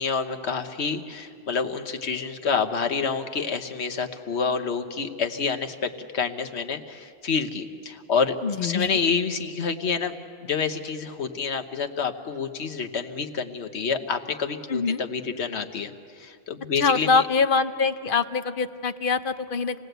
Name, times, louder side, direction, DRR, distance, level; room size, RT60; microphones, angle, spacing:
voice 1, 0.0-10.1 10.4-17.2, left 5 dB, 80° left, 7 dB, 1.4 m, -28 dB
voice 2, 8.4-8.9 14.7-15.0 16.8-19.8, left 5 dB, 55° left, 10 dB, 0.9 m, -24 dB
27.5 x 19.0 x 8.0 m, 2.4 s
omnidirectional pair, 1.1 m